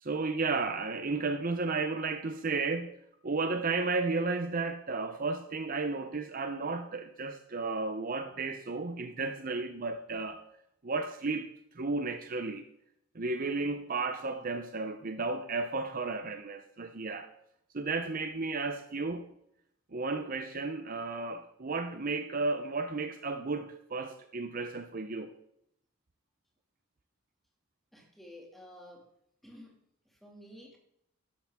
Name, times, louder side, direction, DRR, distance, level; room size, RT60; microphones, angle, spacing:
voice 1, 0.0-2.9 3.2-10.4 10.8-11.5 11.7-12.7 13.1-17.3 17.7-19.3 19.9-25.3, right 3 dB, 45° right, 0.7 m, -33 dB
voice 2, 27.9-29.1 29.4-29.8 30.1-30.8, left 1 dB, ahead, 2.3 m, -51 dB
12.0 x 12.0 x 3.6 m
head